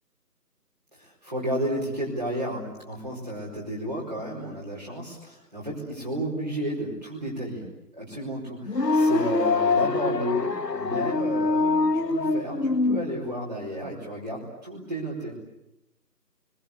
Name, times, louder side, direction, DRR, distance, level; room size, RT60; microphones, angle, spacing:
voice 1, 0.9-7.6 7.9-15.3, right 1 dB, 30° right, -6 dB, 4.8 m, -32 dB
sound 1, 8.7-13.0, left 3 dB, 85° left, 1.3 m, -24 dB
29.5 x 23.0 x 8.2 m, 0.87 s
figure-of-eight pair, 175°, 48 cm